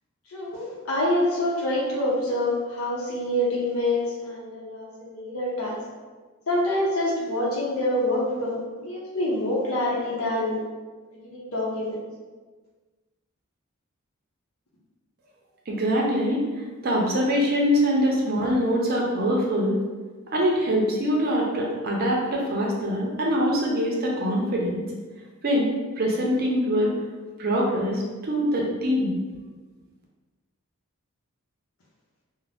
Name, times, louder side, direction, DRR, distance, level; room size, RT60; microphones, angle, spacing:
voice 1, 0.3-5.8 6.5-10.6 11.2-12.0, left 1 dB, 75° left, -5 dB, 0.7 m, -26 dB
voice 2, 15.7-16.4 16.8-19.8 20.3-24.9 25.4-26.9 27.4-29.1, equal, 45° right, -2 dB, 0.6 m, -23 dB
2.5 x 2.1 x 3.3 m, 1.4 s
head